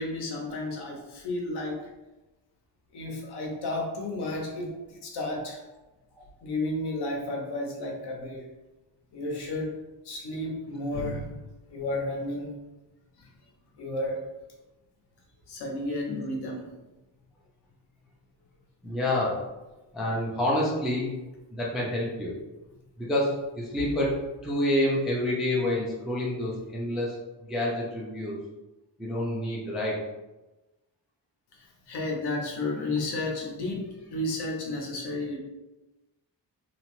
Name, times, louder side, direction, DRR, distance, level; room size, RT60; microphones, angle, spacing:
voice 1, 0.0-1.9 2.9-5.6 6.4-8.5 9.1-9.8 10.0-11.3 11.7-12.5 13.2-13.3 13.8-14.3 15.5-16.6 31.6-35.4, left 2 dB, 65° left, 0 dB, 0.7 m, -32 dB
voice 2, 18.8-19.4 19.9-21.1 21.5-22.3 23.0-27.2 27.5-28.3 29.0-30.0, left 1 dB, ahead, -5 dB, 0.3 m, -28 dB
2.8 x 2.0 x 2.9 m, 1.1 s
wide cardioid pair, 170°, 43 cm